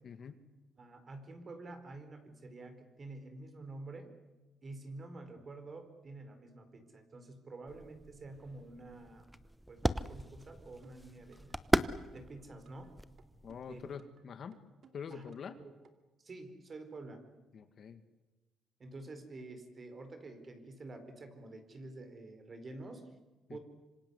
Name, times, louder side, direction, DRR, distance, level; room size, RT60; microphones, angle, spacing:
voice 1, 0.0-0.4 13.4-14.6 14.9-15.6 17.5-18.0 23.5-23.6, left 7 dB, 50° left, 9 dB, 2.1 m, -45 dB
voice 2, 0.8-4.1 4.6-9.4 9.7-11.5 12.1-12.9 13.7-13.8 15.1-15.2 15.6-15.7 16.2-17.2 18.8-23.1 23.5-23.6, right 2 dB, 35° right, 8 dB, 4.5 m, -48 dB
sound 1, 7.7-14.0, equal, 5° right, 1.0 m, -37 dB
sound 2, 10.8-11.6 11.8-12.9 13.2-14.2 14.5-15.6 15.8-15.9, right 6 dB, 50° right, 2.7 m, -64 dB
26.0 x 26.0 x 8.2 m, 1.1 s
cardioid pair, 120°, 0 cm